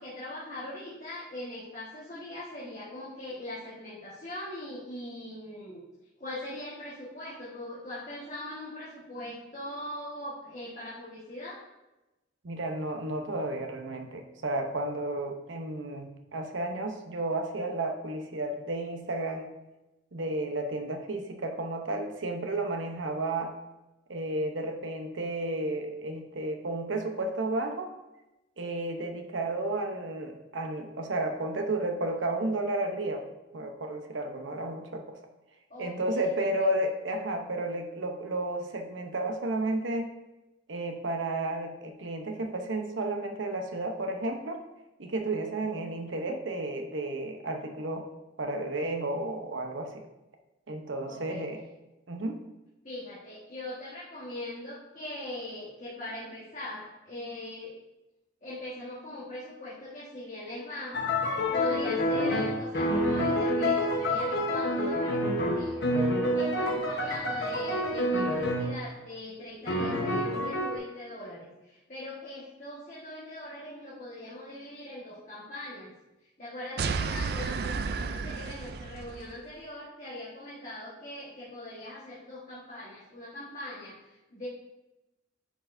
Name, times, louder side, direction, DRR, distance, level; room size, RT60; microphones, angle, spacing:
voice 1, 0.0-5.8 6.2-11.6 35.7-36.3 36.6-36.7 51.1-51.5 52.8-57.7 58.4-65.8 66.3-75.9 76.4-84.5, left 1 dB, 40° left, -8 dB, 1.4 m, -41 dB
voice 2, 12.4-19.5 20.1-23.5 24.1-27.9 28.6-33.2 33.5-35.2 35.8-40.1 40.7-44.6 45.0-48.1 48.4-50.0 50.7-51.6 52.1-52.4, right 2 dB, 80° right, 4 dB, 0.8 m, -32 dB
sound 1, 60.9-68.9 69.7-70.8, left 1 dB, 60° left, 1.0 m, -28 dB
sound 2, 76.8-79.3, right 5 dB, 55° right, 0.3 m, -32 dB
10.0 x 4.6 x 2.6 m, 1.0 s
head